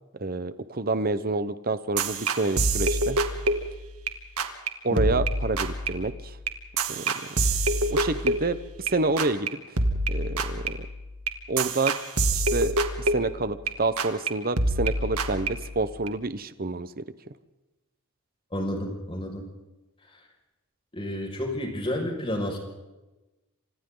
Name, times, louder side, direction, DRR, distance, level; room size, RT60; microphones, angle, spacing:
voice 1, 0.2-3.2 4.8-6.4 6.9-7.1 7.9-9.5 10.1-10.8 11.5-12.0 12.3-12.7 13.0-17.0, right 3 dB, 40° right, 13 dB, 1.0 m, -28 dB
sound 1, 2.0-4.1 4.4-4.7 5.0-8.9 9.2-9.5 9.8-13.7 14.0-14.3 14.6-16.1, right 2 dB, 80° right, 2.4 m, -27 dB
voice 2, 18.5-19.4 20.9-22.6, left 1 dB, 25° left, 1 dB, 5.9 m, -30 dB
28.5 x 27.0 x 4.0 m, 1.1 s
head